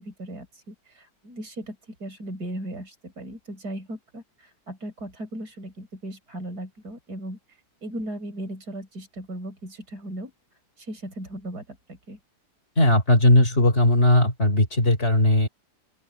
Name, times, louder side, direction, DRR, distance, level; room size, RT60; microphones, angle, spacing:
voice 1, 0.0-7.4 7.8-10.3 10.8-12.2, right 1 dB, 65° right, 5.5 m, -37 dB
voice 2, 12.8-15.5, left 1 dB, 35° left, 4.2 m, -18 dB
open air
omnidirectional pair, 1.8 m